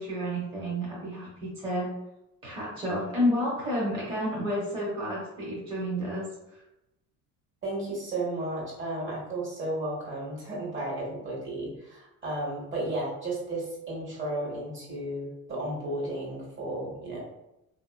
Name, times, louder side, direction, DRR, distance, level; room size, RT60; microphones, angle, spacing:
voice 1, 0.0-1.9 2.4-6.6, equal, 15° right, -6 dB, 0.9 m, -30 dB
voice 2, 7.6-17.2, right 1 dB, 40° right, -4 dB, 1.4 m, -33 dB
3.6 x 2.8 x 2.2 m, 0.90 s
cardioid pair, 130°, 30 cm